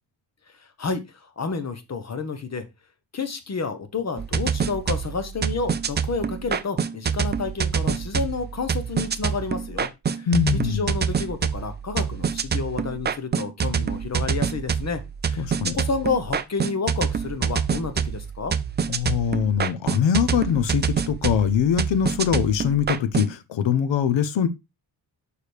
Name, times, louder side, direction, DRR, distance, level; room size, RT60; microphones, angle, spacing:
voice 1, 1.4-2.6 3.1-9.9 10.1-15.5 15.7-18.5, left 4 dB, 35° left, 1.0 m, -30 dB
sound 1, 4.2-23.3, right 7 dB, 25° right, 0.3 m, -26 dB
voice 2, 10.3-10.9 15.4-15.7 18.9-24.5, left 8 dB, 90° left, 0.8 m, -22 dB
6.6 x 4.7 x 3.3 m
wide cardioid pair, 125°, 43 cm